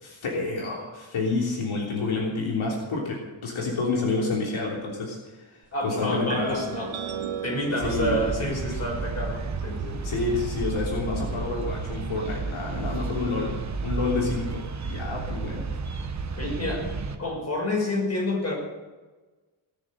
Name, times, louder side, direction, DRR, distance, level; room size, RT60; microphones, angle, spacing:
voice 1, 0.0-5.2 5.5-5.6 5.8-6.7 7.8-8.2 10.0-15.7, left 3 dB, 75° left, -3 dB, 3.4 m, -29 dB
voice 2, 5.7-7.0 7.4-10.0 16.4-16.9 17.2-18.5, left 1 dB, 30° left, -1 dB, 6.1 m, -28 dB
sound 1, 6.3-12.0, right 9 dB, 85° right, 1.4 m, -39 dB
sound 2, 7.8-17.2, right 4 dB, 35° right, 1.2 m, -32 dB
19.0 x 7.3 x 9.0 m, 1.2 s
wide cardioid pair, 155°, 49 cm